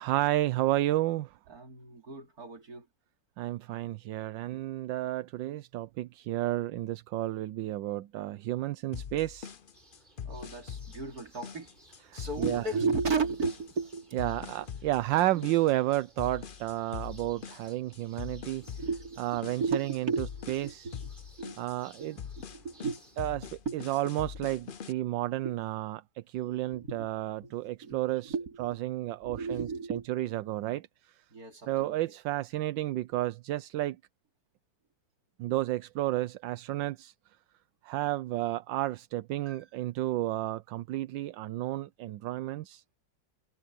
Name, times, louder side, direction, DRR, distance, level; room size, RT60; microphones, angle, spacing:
voice 1, 0.0-1.4 3.4-9.5 12.1-12.6 14.1-18.7 19.2-20.1 20.5-20.9 21.6-22.2 23.2-26.0 26.3-28.3 28.6-30.9 31.7-34.0 35.4-37.1 37.8-42.8, right 15 dB, 85° right, 1.4 m, -31 dB
voice 2, 1.5-2.9 10.3-11.7 12.1-14.7 18.6-21.1 21.4-21.6 22.0-22.2 22.5-23.8 25.4-25.6 26.7-27.1 27.4-27.5 27.8-28.0 28.2-28.7 29.2-30.1 31.3-32.0 39.5-39.6, right 4 dB, 55° right, 3.6 m, -35 dB
sound 1, 8.9-24.9, left 7 dB, 85° left, 0.4 m, -42 dB
sound 2, 9.7-23.3, right 1 dB, 25° right, 8.4 m, -59 dB
omnidirectional pair, 2.0 m